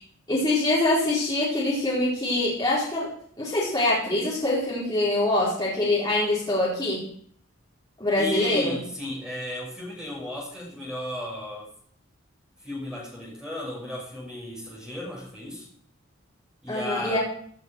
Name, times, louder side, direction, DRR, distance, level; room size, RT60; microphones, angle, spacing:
voice 1, 0.3-3.1 3.4-7.1 8.0-8.8 16.7-17.2, left 2 dB, 20° left, -8 dB, 5.0 m, -24 dB
voice 2, 8.2-11.7 12.6-15.7 16.6-17.2, left 1 dB, 5° right, -4 dB, 5.9 m, -34 dB
17.5 x 9.2 x 4.9 m, 0.62 s
head